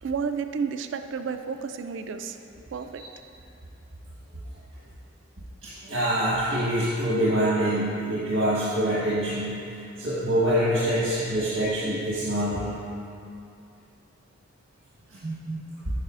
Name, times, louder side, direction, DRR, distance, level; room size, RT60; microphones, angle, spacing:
voice 1, 0.0-2.4 2.7-3.0, right 6 dB, 60° right, 9 dB, 0.3 m, -31 dB
voice 2, 5.6-12.8 15.1-15.6, right 1 dB, 90° right, -10 dB, 1.3 m, -25 dB
9.6 x 5.4 x 2.5 m, 2.5 s
head